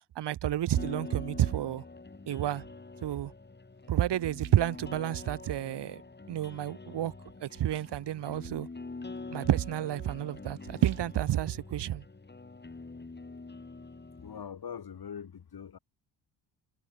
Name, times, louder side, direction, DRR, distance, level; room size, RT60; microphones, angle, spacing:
voice 1, 0.2-1.8 2.3-2.6 3.0-3.3 3.9-6.0 6.3-7.1 7.4-8.7 9.3-12.0, right 12 dB, 60° right, 1.2 m, -30 dB
sound 1, 0.8-14.4, left 3 dB, 20° left, 4.7 m, -45 dB
sound 2, 3.7-5.8 6.2-6.6 6.9-12.8 13.3-13.4, right 16 dB, 90° right, 7.2 m, -60 dB
voice 2, 14.2-15.8, left 7 dB, 50° left, 5.8 m, -42 dB
cardioid pair, 70°, 46 cm